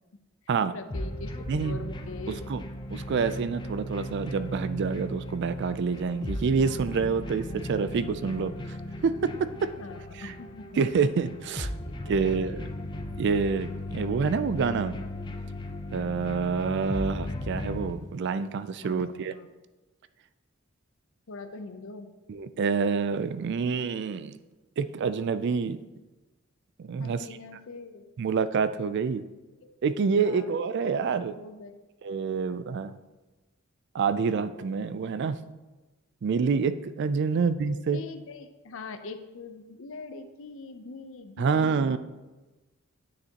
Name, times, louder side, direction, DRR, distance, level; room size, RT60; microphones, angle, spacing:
voice 1, 0.7-2.4 9.8-10.9 11.8-12.7 18.8-19.0 19.4-19.5 21.3-22.1 27.0-28.0 29.6-29.7 30.2-30.5 31.3-31.7 37.3-37.4 37.9-42.0, left 3 dB, 65° left, 9 dB, 0.6 m, -42 dB
sound 1, 0.9-17.9, left 1 dB, 20° left, 0.5 m, -37 dB
voice 2, 1.5-1.8 2.5-2.6 2.9-8.5 9.0-9.3 9.6-9.7 10.1-10.3 10.8-11.7 12.1-12.6 13.2-15.0 15.9-19.3 22.3-24.3 24.8-25.8 26.8-27.2 28.2-29.2 29.8-31.4 32.0-32.9 33.9-35.4 36.2-38.0 41.4-42.0, right 5 dB, 55° right, 13 dB, 0.3 m, -27 dB
9.7 x 6.6 x 2.9 m, 1.2 s
head